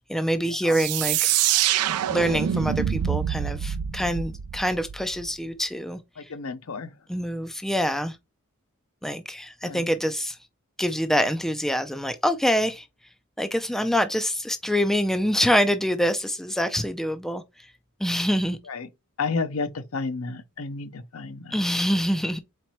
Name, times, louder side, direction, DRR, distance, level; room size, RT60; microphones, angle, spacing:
voice 1, 0.0-1.3 2.1-6.0 7.1-8.2 9.0-10.4 10.8-12.9 13.4-17.4 18.0-18.6 21.5-22.4, equal, ahead, 0.3 m, -25 dB
sound 1, 0.7-5.3, right 11 dB, 85° right, 0.3 m, -25 dB
voice 2, 6.3-6.9 9.6-9.9 18.7-18.9 19.2-21.6, left 4 dB, 70° left, 0.6 m, -31 dB
4.5 x 3.9 x 3.0 m
head